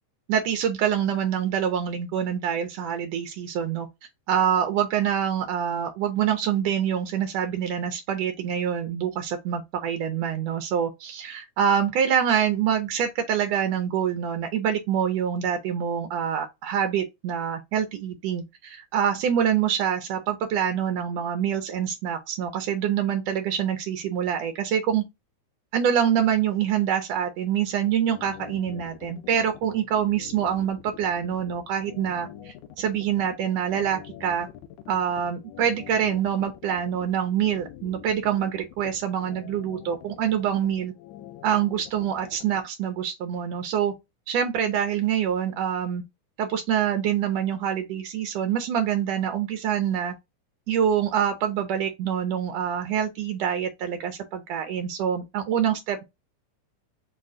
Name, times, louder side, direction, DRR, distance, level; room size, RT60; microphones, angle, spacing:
voice 1, 0.3-3.9 4.3-25.0 25.7-34.5 34.9-40.9 41.4-43.9 44.3-46.0 46.4-50.1 50.7-56.0, right 9 dB, 85° right, 1.4 m, -25 dB
sound 1, 27.9-42.6, left 11 dB, 80° left, 2.0 m, -45 dB
5.1 x 2.4 x 3.6 m
omnidirectional pair, 3.6 m